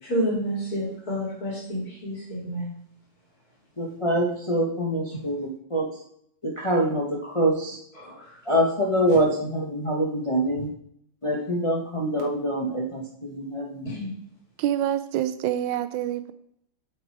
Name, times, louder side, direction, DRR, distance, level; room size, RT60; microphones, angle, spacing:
voice 1, 0.0-2.7 5.1-5.2 7.9-8.4 9.1-9.2 10.5-10.6 13.8-14.2, equal, 50° left, -6 dB, 4.0 m, -30 dB
voice 2, 3.8-5.9 6.6-7.8 8.5-10.7 11.2-13.9, right 1 dB, 20° left, -2 dB, 0.9 m, -25 dB
voice 3, 14.6-16.3, right 11 dB, 80° right, 12 dB, 1.3 m, -26 dB
8.1 x 5.8 x 4.7 m, 0.71 s
omnidirectional pair, 2.1 m